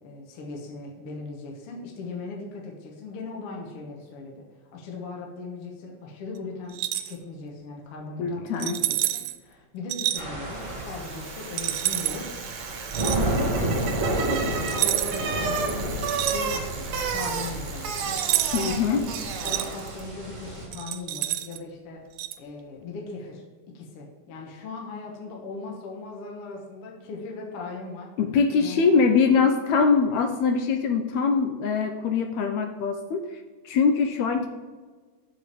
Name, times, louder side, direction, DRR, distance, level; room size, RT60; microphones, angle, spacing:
voice 1, 0.0-4.5 4.7-12.7 13.1-18.2 18.7-19.1 19.4-22.0 22.4-23.4 23.7-28.1 28.6-29.1, left 3 dB, 60° left, -1 dB, 1.8 m, -38 dB
sound 1, 6.7-7.1 8.6-9.4 9.9-10.2 11.6-12.2 12.9-13.2 14.7-15.3 15.6-16.8 18.2-18.7 19.1-19.7 20.7-21.6 22.2-22.4, right 14 dB, 85° right, 2.1 m, -28 dB
voice 2, 8.2-8.8 18.5-19.0 28.2-34.5, left 5 dB, 75° left, 6 dB, 1.7 m, -23 dB
sound 2, 10.2-20.7, right 1 dB, 40° right, 0.4 m, -31 dB
Bicycle, 10.7-20.1, right 6 dB, 70° right, 2.0 m, -33 dB
7.2 x 4.9 x 6.8 m, 1.4 s
omnidirectional pair, 3.6 m